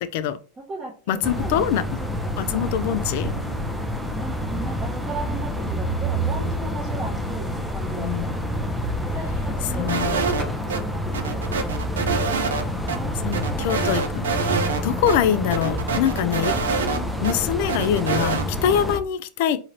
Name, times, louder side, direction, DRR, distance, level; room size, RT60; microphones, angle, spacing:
voice 1, 0.0-0.4 1.1-1.8 2.4-3.3 8.0-8.3 9.8-10.2 13.2-14.3 14.8-16.5 17.2-19.6, left 9 dB, 65° left, 0.4 m, -24 dB
voice 2, 0.5-2.2 2.4-3.0 4.1-8.3 8.7-11.6 12.6-13.7, right 3 dB, 25° right, 1.1 m, -37 dB
sound 1, 1.2-19.0, equal, ahead, 0.6 m, -28 dB
sound 2, 9.9-10.8 11.1-12.6 12.9-13.0 13.3-14.8 15.1-15.2 15.5-17.3 17.7-18.5, right 5 dB, 85° right, 0.5 m, -26 dB
3.8 x 3.0 x 2.7 m
hypercardioid pair, 100°, 0 cm